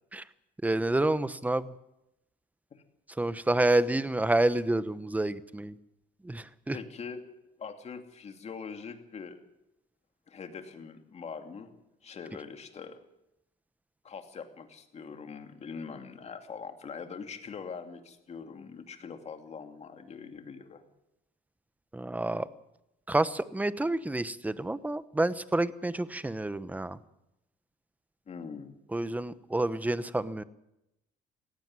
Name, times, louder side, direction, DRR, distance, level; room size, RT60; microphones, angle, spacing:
voice 1, 0.6-1.7 3.2-5.7 6.2-6.8 21.9-22.5 23.1-27.0 28.9-30.4, right 2 dB, 10° right, 15 dB, 0.9 m, -28 dB
voice 2, 6.7-7.2 7.6-9.4 10.3-11.7 12.0-13.0 14.0-20.8 28.3-28.8, left 5 dB, 40° left, 6 dB, 2.7 m, -43 dB
17.5 x 15.5 x 9.6 m, 0.88 s
cardioid pair, 110°, 17 cm